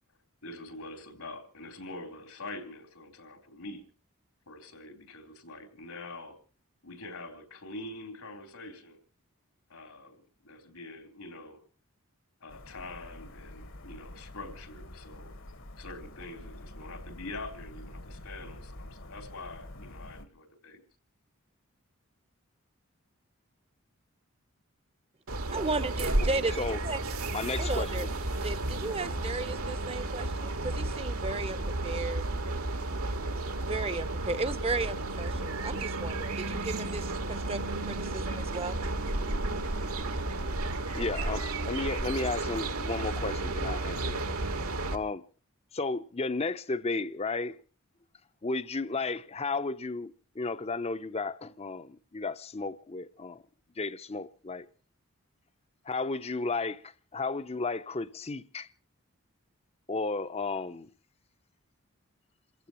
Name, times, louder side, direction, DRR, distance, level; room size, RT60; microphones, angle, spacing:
voice 1, 0.4-3.8 4.5-6.4 6.8-9.0 9.7-11.6 12.4-15.3 15.8-20.8, left 2 dB, 85° left, 3.8 m, -45 dB
sound 1, 12.5-20.3, left 1 dB, 65° left, 1.5 m, -47 dB
sound 2, 25.3-45.0, right 2 dB, 80° right, 1.8 m, -32 dB
voice 2, 25.5-27.2 27.6-28.1 28.4-32.3 33.6-38.8, right 3 dB, 25° right, 0.8 m, -35 dB
voice 3, 27.3-27.9 40.9-44.4 44.9-45.2 45.7-47.6 48.4-53.4 53.8-54.7 55.9-58.7 59.9-60.9, left 3 dB, 30° left, 0.7 m, -33 dB
28.5 x 15.5 x 3.0 m
head